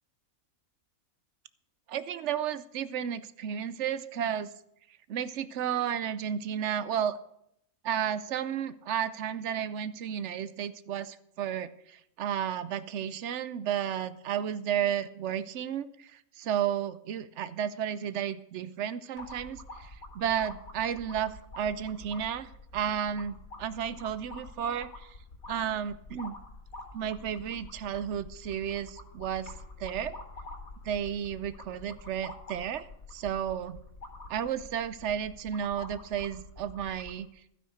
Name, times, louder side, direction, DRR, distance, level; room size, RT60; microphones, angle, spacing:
voice 1, 1.9-4.5 5.1-7.2 7.8-25.1 25.5-26.4 26.9-29.5 29.8-30.2 30.8-33.8 34.3-37.3, right 9 dB, 65° right, 15 dB, 0.9 m, -33 dB
sound 1, 19.2-37.2, left 2 dB, 90° left, 2.8 m, -47 dB
12.0 x 9.6 x 6.5 m, 0.76 s
omnidirectional pair, 1.4 m